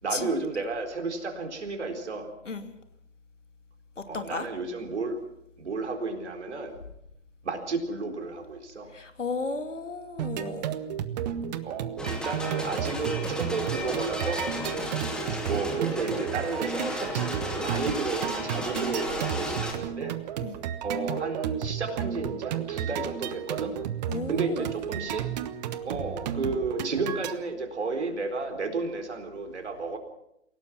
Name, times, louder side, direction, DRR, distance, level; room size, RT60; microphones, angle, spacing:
voice 1, 0.0-2.3 4.1-5.2 5.6-6.8 7.4-8.9 11.6-14.5 15.4-20.2 20.8-23.8 24.3-25.3 25.8-30.0, right 3 dB, 65° right, 5 dB, 4.2 m, -32 dB
voice 2, 4.1-4.5 8.9-10.7 20.4-20.6 24.1-24.7, left 3 dB, 75° left, 7 dB, 2.7 m, -34 dB
sound 1, 10.2-27.3, right 10 dB, 35° right, 1.2 m, -33 dB
sound 2, 12.0-19.7, left 1 dB, ahead, 2.6 m, -34 dB
28.0 x 17.5 x 6.0 m, 0.79 s
figure-of-eight pair, 120°, 37 cm